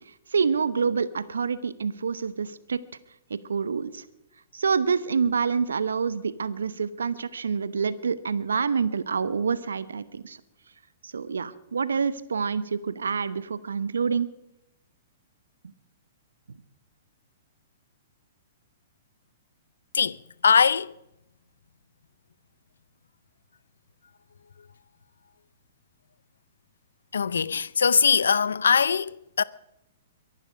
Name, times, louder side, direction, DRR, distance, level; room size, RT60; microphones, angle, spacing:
voice 1, 0.1-2.8 3.3-4.0 4.5-10.4 11.0-14.3 15.6-15.7, right 5 dB, 75° right, 1.0 m, -27 dB
voice 2, 19.9-20.9 27.1-29.4, left 6 dB, 75° left, 0.5 m, -22 dB
23.0 x 11.5 x 5.2 m
figure-of-eight pair, 115°, 0 cm